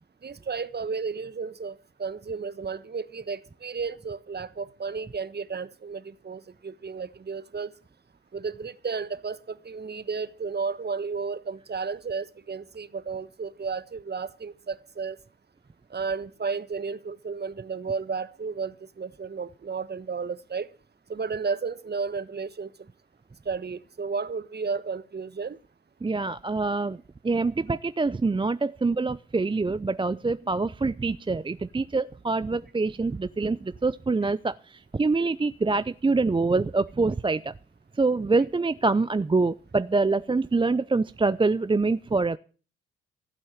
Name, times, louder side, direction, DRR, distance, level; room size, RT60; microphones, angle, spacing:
voice 1, 0.2-7.7 8.3-15.2 15.9-20.7 21.1-22.7 23.4-25.6 27.7-27.8, right 5 dB, 35° right, 1.3 m, -33 dB
voice 2, 26.0-27.0 27.2-37.5 38.0-42.4, right 3 dB, 15° right, 0.6 m, -25 dB
15.5 x 8.6 x 7.3 m
hypercardioid pair, 45°, 30 cm